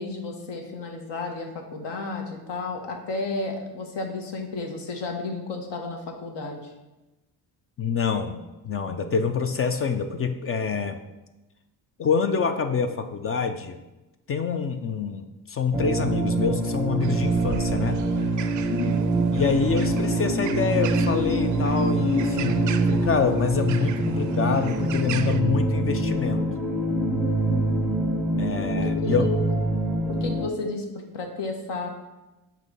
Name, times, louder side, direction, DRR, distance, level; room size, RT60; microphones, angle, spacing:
voice 1, 0.0-6.6 18.7-19.0 28.7-29.5 30.1-31.9, left 3 dB, 65° left, 3 dB, 1.3 m, -32 dB
voice 2, 7.8-11.0 12.0-13.8 14.3-18.0 19.3-26.5 28.4-29.2, left 6 dB, 35° left, 9 dB, 0.4 m, -26 dB
sound 1, 15.7-30.5, right 1 dB, 5° right, 0.7 m, -25 dB
sound 2, 17.0-25.4, right 9 dB, 45° right, 0.4 m, -38 dB
7.8 x 3.1 x 5.4 m, 1.1 s
cardioid pair, 120°, 45 cm